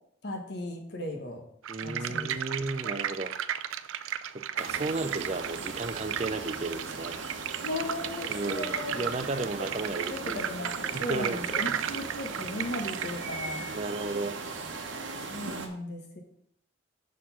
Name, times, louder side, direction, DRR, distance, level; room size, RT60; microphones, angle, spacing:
voice 1, 0.2-1.4 1.8-2.3 2.7-3.0 7.6-9.0 10.0-13.7 15.3-16.2, left 1 dB, 55° left, 3 dB, 1.1 m, -36 dB
sound 1, 1.6-13.2, right 9 dB, 90° right, 0.4 m, -35 dB
voice 2, 1.7-3.4 4.3-7.2 8.3-10.4 10.9-12.0 13.7-14.4, right 3 dB, 35° right, 10 dB, 0.5 m, -34 dB
sound 2, 4.6-15.7, right 3 dB, 75° right, 1.0 m, -38 dB
6.2 x 4.4 x 5.7 m, 0.68 s
head